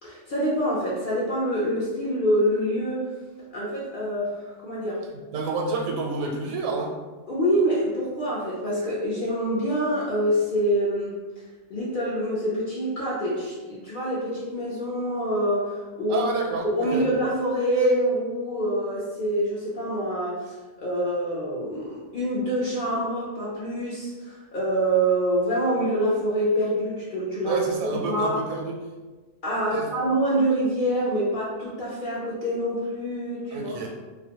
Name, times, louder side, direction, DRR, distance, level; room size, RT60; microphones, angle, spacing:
voice 1, 0.0-3.1 3.5-5.0 7.3-11.2 11.7-16.3 16.6-28.4 29.4-33.8, right 1 dB, 60° left, -6 dB, 0.5 m, -26 dB
voice 2, 5.3-6.9 16.1-17.1 27.4-28.8 29.7-29.9 33.5-33.9, right 3 dB, 80° right, 0 dB, 1.0 m, -29 dB
2.4 x 2.1 x 2.8 m, 1.3 s
omnidirectional pair, 1.4 m